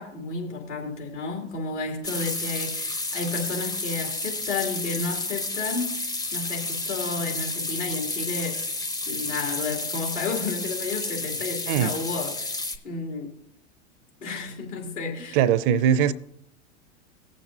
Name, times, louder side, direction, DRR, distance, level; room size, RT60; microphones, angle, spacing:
voice 1, 0.0-8.6 9.1-12.6 12.8-13.3 14.2-15.4, left 4 dB, 75° left, 2.9 m, -32 dB
sound 1, 2.0-12.8, left 2 dB, 10° left, 0.6 m, -31 dB
voice 2, 15.3-16.1, right 9 dB, 45° right, 0.5 m, -20 dB
18.0 x 7.4 x 2.7 m
hypercardioid pair, 95°, 36 cm